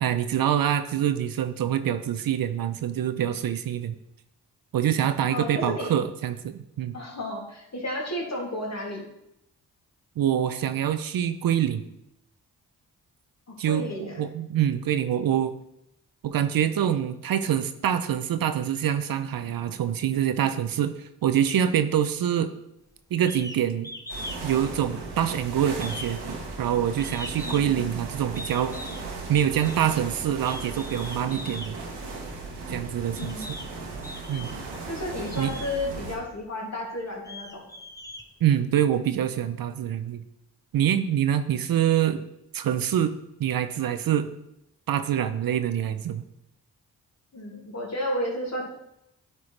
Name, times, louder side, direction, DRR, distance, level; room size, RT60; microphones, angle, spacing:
voice 1, 0.0-4.0 4.7-7.0 10.2-11.8 13.6-15.5 16.2-22.5 23.1-23.9 24.4-26.2 26.6-28.7 29.3-31.8 32.7-33.5 34.3-34.6 35.4-35.5 38.4-40.2 40.7-42.2 42.5-43.1 43.4-44.3 44.9-46.2, right 10 dB, 60° right, 10 dB, 0.6 m, -25 dB
voice 2, 5.3-5.9 6.9-9.1 13.6-14.2 27.4-27.9 33.2-33.5 34.9-37.6 45.1-45.3 47.3-48.7, left 1 dB, 40° left, -2 dB, 2.5 m, -32 dB
sound 1, 23.3-23.6 23.8-24.4 24.7-25.4 25.8-27.8 28.4-29.1 29.5-29.8 30.4-31.7 32.5-32.6 33.2-33.7 34.0-34.7 35.3-35.7 36.4-36.5 37.0-38.8, left 1 dB, 10° left, 0.9 m, -40 dB
sound 2, 24.1-36.2, right 3 dB, 85° right, 1.3 m, -37 dB
9.6 x 4.6 x 3.3 m, 0.83 s
supercardioid pair, 45°, 40 cm